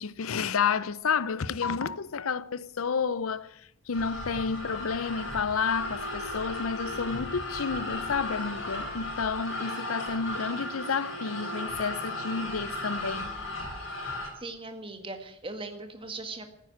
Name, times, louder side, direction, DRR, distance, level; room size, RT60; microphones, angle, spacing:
voice 1, 0.0-3.6 3.9-13.3, left 5 dB, 85° left, 0.6 m, -30 dB
sound 1, 3.9-14.3, left 1 dB, 60° left, 4.7 m, -35 dB
voice 2, 14.4-16.5, right 2 dB, 25° right, 1.9 m, -39 dB
14.5 x 9.7 x 9.2 m
head